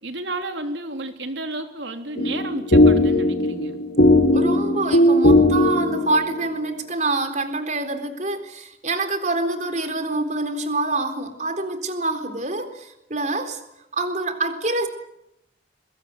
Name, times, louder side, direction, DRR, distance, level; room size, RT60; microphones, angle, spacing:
voice 1, 0.0-3.8, right 2 dB, 85° right, 5 dB, 3.5 m, -32 dB
sound 1, 2.2-6.5, left 1 dB, 70° left, 2.3 m, -17 dB
voice 2, 4.3-13.6 13.9-14.9, right 2 dB, 40° right, 6 dB, 3.9 m, -26 dB
23.5 x 21.5 x 9.5 m, 0.84 s
head